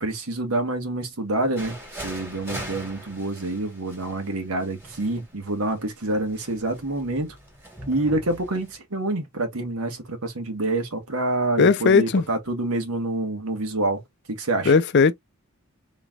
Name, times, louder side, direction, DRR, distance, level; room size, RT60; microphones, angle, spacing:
voice 1, 0.0-1.8 2.0-7.4 7.9-14.0 14.3-14.7, right 2 dB, 80° right, 1.4 m, -27 dB
sound 1, 1.6-8.8, equal, 10° right, 1.6 m, -41 dB
voice 2, 11.6-12.2 14.7-15.1, left 5 dB, 50° left, 0.5 m, -17 dB
4.0 x 3.3 x 2.3 m
head